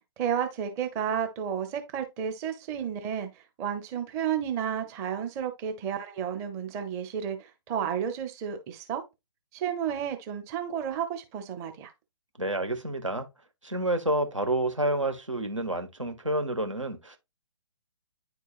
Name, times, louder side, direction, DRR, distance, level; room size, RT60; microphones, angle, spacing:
voice 1, 0.2-9.0 9.5-11.9, right 8 dB, 15° right, 0.7 m, -32 dB
voice 2, 12.4-13.3 13.6-17.2, right 1 dB, 85° right, 1.4 m, -29 dB
9.6 x 4.6 x 2.4 m
figure-of-eight pair, 130°, 16 cm